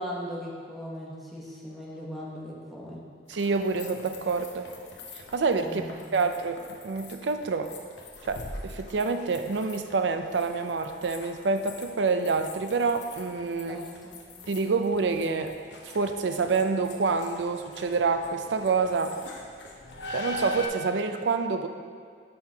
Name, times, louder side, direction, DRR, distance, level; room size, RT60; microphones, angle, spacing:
voice 1, 0.0-3.0 5.6-6.2 13.7-14.2, equal, ahead, -6 dB, 1.1 m, -38 dB
sound 1, 3.3-20.7, left 1 dB, 70° left, 0.9 m, -43 dB
voice 2, 3.3-4.7 5.1-5.9 6.1-7.7 8.3-13.8 14.5-15.6 15.8-19.2 20.1-21.7, right 4 dB, 70° right, 8 dB, 0.5 m, -27 dB
10.5 x 5.8 x 2.8 m, 2.1 s
head